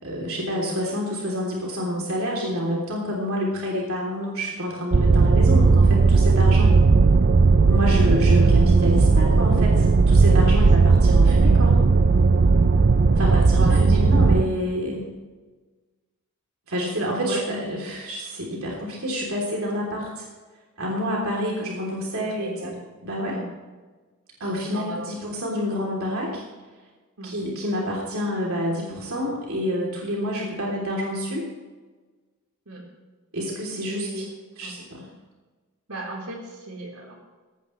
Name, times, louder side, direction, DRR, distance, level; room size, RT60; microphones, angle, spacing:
voice 1, 0.0-6.8 7.6-11.8 13.2-15.1 16.7-20.3 20.8-22.7 23.0-23.4 24.4-26.4 27.2-31.4 33.3-34.1 34.6-35.1, equal, 65° right, -3 dB, 3.4 m, -28 dB
sound 1, 4.9-14.4, right 4 dB, 50° right, 0.5 m, -16 dB
voice 2, 13.2-14.1 17.2-17.6 21.5-21.7 22.2-22.7 23.2-23.5 24.6-25.1 27.2-27.3 32.7-32.8 33.9-34.3 34.6-34.7 35.9-37.1, right 1 dB, 90° right, -1 dB, 4.2 m, -35 dB
19.0 x 16.5 x 3.3 m, 1.3 s
head